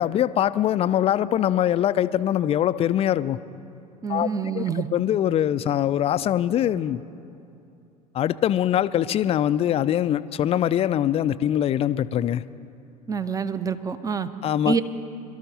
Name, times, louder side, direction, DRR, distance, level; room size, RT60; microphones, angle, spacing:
voice 1, 0.0-3.4 4.1-4.3 4.5-4.6 4.9-7.0 8.1-12.4 14.4-14.8, left 11 dB, 30° left, 15 dB, 0.5 m, -22 dB
voice 2, 4.0-4.9 13.1-14.3 14.6-14.8, right 6 dB, 15° right, 13 dB, 0.8 m, -26 dB
24.5 x 13.0 x 4.1 m, 2.7 s
figure-of-eight pair, 70°, 20 cm